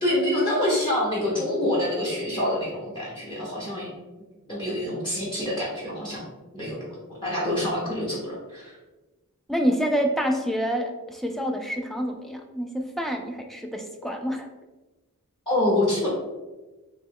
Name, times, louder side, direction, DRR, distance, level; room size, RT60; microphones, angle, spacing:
voice 1, 0.0-3.9 4.5-6.2 6.5-6.9 7.2-8.7 15.5-16.1, left 1 dB, 20° left, -6 dB, 0.8 m, -26 dB
voice 2, 9.5-14.5, equal, ahead, 3 dB, 0.3 m, -27 dB
3.1 x 3.0 x 3.6 m, 1.1 s
head